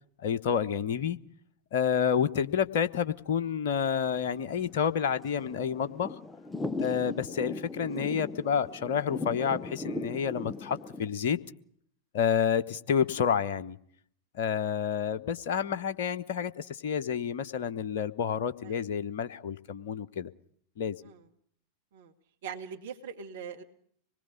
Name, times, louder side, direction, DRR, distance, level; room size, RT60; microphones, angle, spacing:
voice 1, 0.2-1.2 1.7-6.1 6.8-11.4 12.1-13.8 14.3-20.3 20.8-21.0, left 7 dB, 55° left, 11 dB, 1.1 m, -29 dB
Thunder / Rain, 4.0-11.1, left 2 dB, 10° left, 0.9 m, -39 dB
voice 2, 22.4-23.6, right 7 dB, 55° right, 5 dB, 1.9 m, -42 dB
25.5 x 20.5 x 5.3 m, 0.63 s
figure-of-eight pair, 90°, 0 cm